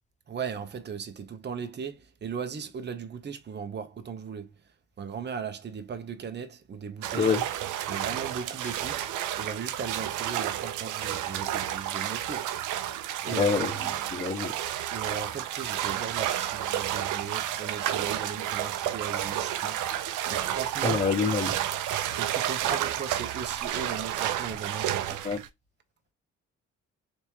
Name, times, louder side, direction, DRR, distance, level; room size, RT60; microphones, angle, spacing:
voice 1, 0.3-4.5 5.0-7.3 7.9-9.0 9.3-12.5 13.2-14.1 14.9-21.1 22.2-25.1, right 6 dB, 35° right, 0.8 m, -37 dB
sound 1, 7.0-25.5, right 11 dB, 80° right, 0.6 m, -31 dB
voice 2, 13.4-13.7 14.1-14.5 20.8-21.5 25.2-25.4, left 5 dB, 25° left, 0.6 m, -26 dB
3.5 x 3.0 x 2.9 m
cardioid pair, 90°, 30 cm